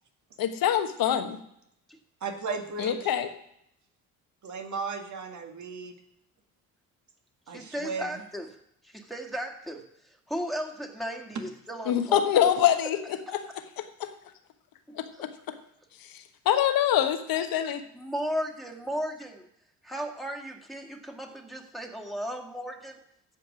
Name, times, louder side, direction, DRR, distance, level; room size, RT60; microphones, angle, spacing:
voice 1, 0.4-1.4 2.8-3.3 11.9-13.0 15.0-15.3 16.4-17.8, left 10 dB, 55° left, 8 dB, 1.3 m, -24 dB
voice 2, 2.2-3.0 4.4-5.9 7.5-8.1, right 5 dB, 45° right, 5 dB, 1.9 m, -35 dB
voice 3, 7.5-8.5 8.8-9.8 10.3-12.5 13.3-13.4 14.9-15.2 17.9-19.5 19.8-23.0, equal, ahead, 2 dB, 2.1 m, -35 dB
15.5 x 5.3 x 6.2 m, 0.75 s
hypercardioid pair, 50°, 41 cm